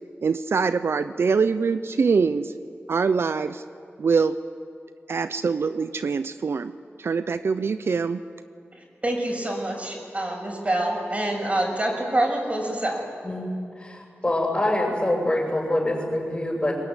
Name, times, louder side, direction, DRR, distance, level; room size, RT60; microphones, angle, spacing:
voice 1, 0.2-2.5 2.9-3.6 4.0-4.4 5.1-6.7 7.0-8.2, right 5 dB, 70° right, 12 dB, 0.6 m, -23 dB
voice 2, 9.0-13.0, right 1 dB, 30° right, 0 dB, 6.7 m, -26 dB
voice 3, 13.8-16.8, left 1 dB, 25° left, 1 dB, 7.0 m, -25 dB
23.0 x 20.0 x 9.8 m, 2.3 s
wide cardioid pair, 80°, 4 cm